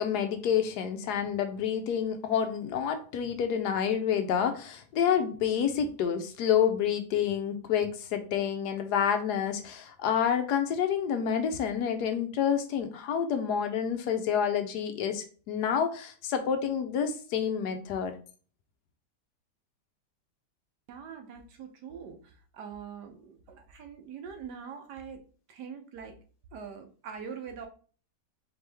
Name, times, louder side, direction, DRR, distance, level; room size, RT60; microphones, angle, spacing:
voice 1, 0.0-18.2, left 8 dB, 75° left, 7 dB, 1.1 m, -28 dB
voice 2, 20.9-25.2 25.5-26.1 26.5-27.7, right 6 dB, 75° right, 6 dB, 1.3 m, -43 dB
4.3 x 3.1 x 3.4 m, 0.40 s
omnidirectional pair, 1.9 m